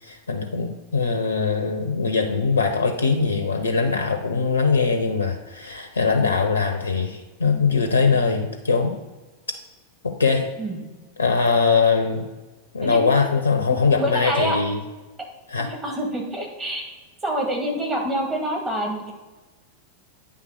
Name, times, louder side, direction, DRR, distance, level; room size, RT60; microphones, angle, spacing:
voice 1, 0.0-8.9 10.0-10.5 11.2-12.3 12.7-14.8 15.5-15.7, left 5 dB, 75° left, 6 dB, 0.6 m, -21 dB
voice 2, 13.7-14.6 15.6-16.8 17.2-19.1, right 1 dB, 20° right, 0 dB, 2.0 m, -26 dB
8.9 x 3.4 x 6.3 m, 1.2 s
figure-of-eight pair, 90°, 0 cm